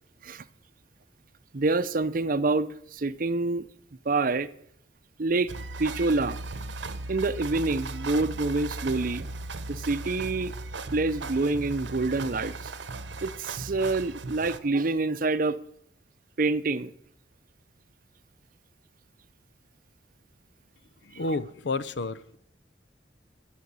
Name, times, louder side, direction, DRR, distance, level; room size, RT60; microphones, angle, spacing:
voice 1, 1.5-3.6 4.0-4.5 5.2-5.5 5.8-6.4 7.1-9.3 9.7-10.5 10.9-12.7 13.2-15.6 16.4-16.9, right 3 dB, 50° right, 0.6 m, -27 dB
sound 1, 5.5-14.6, right 2 dB, 85° right, 0.9 m, -37 dB
voice 2, 21.0-22.2, left 3 dB, 75° left, 0.7 m, -30 dB
13.5 x 6.5 x 8.4 m
head